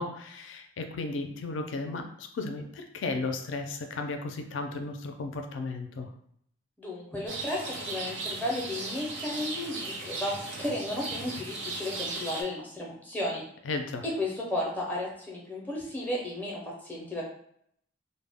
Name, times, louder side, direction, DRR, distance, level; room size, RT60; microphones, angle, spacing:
voice 1, 0.0-6.1 13.7-14.0, left 3 dB, 70° left, 5 dB, 0.4 m, -34 dB
voice 2, 6.8-13.4 14.0-17.2, left 1 dB, 10° left, -3 dB, 0.4 m, -34 dB
Rain, 7.3-12.4, right 3 dB, 65° right, 0.6 m, -37 dB
2.1 x 2.0 x 3.4 m, 0.68 s
head